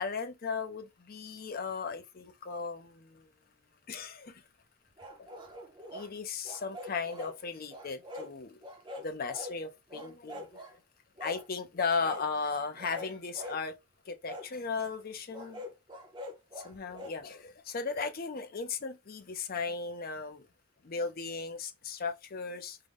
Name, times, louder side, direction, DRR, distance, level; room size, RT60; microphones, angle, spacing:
voice 1, 0.0-3.3 3.9-4.4 5.2-5.3 5.9-8.6 9.0-10.8 11.2-13.7 14.1-15.6 16.6-20.5 20.8-22.8, left 5 dB, 40° left, 0.5 m, -36 dB
sound 1, 5.0-6.1 6.4-7.4 7.7-8.3 8.6-9.6 9.9-10.7 11.2-11.5 12.0-12.3 12.8-13.6 14.3-14.5 15.3-17.2, left 1 dB, 20° right, 0.6 m, -44 dB
3.7 x 2.1 x 3.4 m
head